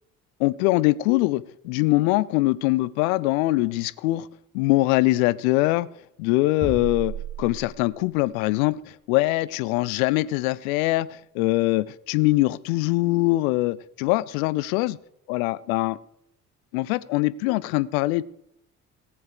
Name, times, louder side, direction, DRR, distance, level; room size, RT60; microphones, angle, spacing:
voice 1, 0.4-4.3 4.5-5.9 6.2-7.1 7.4-15.0 15.3-16.0 16.7-18.2, left 19 dB, 65° left, 18 dB, 0.6 m, -23 dB
sound 1, 6.6-8.2, right 4 dB, 25° right, 6.4 m, -34 dB
17.5 x 7.3 x 4.8 m, 0.75 s
figure-of-eight pair, 55°, 45 cm